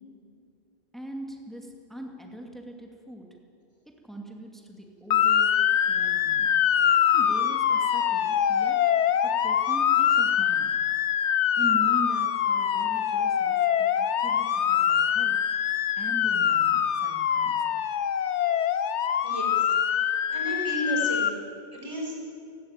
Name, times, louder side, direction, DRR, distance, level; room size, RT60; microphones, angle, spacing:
voice 1, 0.9-3.3 4.0-6.5 7.1-8.8 9.2-10.7 11.6-15.4 16.0-17.8, right 1 dB, ahead, 1 dB, 2.3 m, -41 dB
Motor vehicle (road) / Siren, 5.1-21.3, left 9 dB, 90° left, 1.1 m, -24 dB
voice 2, 19.2-19.7 19.9-21.3 21.7-22.3, equal, 25° right, -2 dB, 5.4 m, -33 dB
17.0 x 17.0 x 9.0 m, 2.5 s
omnidirectional pair, 1.1 m